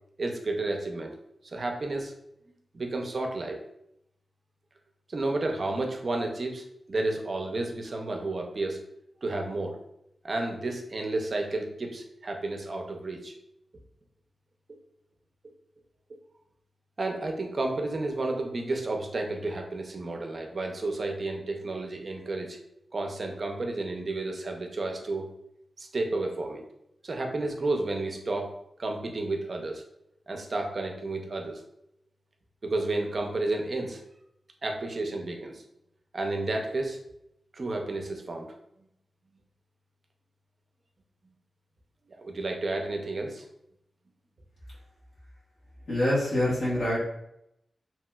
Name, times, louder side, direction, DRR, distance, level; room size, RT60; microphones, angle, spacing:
voice 1, 0.2-1.1 1.4-2.2 2.7-3.6 5.1-8.8 9.2-9.8 10.2-13.3 17.0-22.6 22.9-25.3 25.8-26.6 27.0-28.5 28.8-29.8 30.3-31.6 32.6-34.0 34.6-35.6 36.1-37.0 37.5-38.5 42.1-43.5, right 2 dB, 45° right, 2 dB, 0.5 m, -31 dB
voice 2, 45.9-47.0, left 1 dB, 80° left, -8 dB, 1.1 m, -25 dB
2.9 x 2.9 x 2.2 m, 0.78 s
wide cardioid pair, 135°, 0 cm